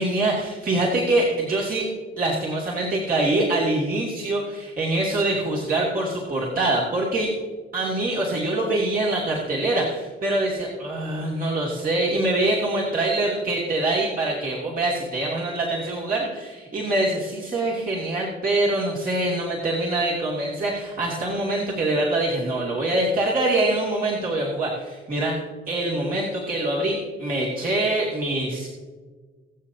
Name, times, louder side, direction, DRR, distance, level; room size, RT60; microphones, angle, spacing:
voice 1, 0.0-1.9 2.2-7.3 7.7-25.4 25.7-28.9, right 2 dB, 45° right, -5 dB, 2.7 m, -24 dB
23.0 x 7.7 x 2.8 m, 1.4 s
cardioid pair, 90°, 20 cm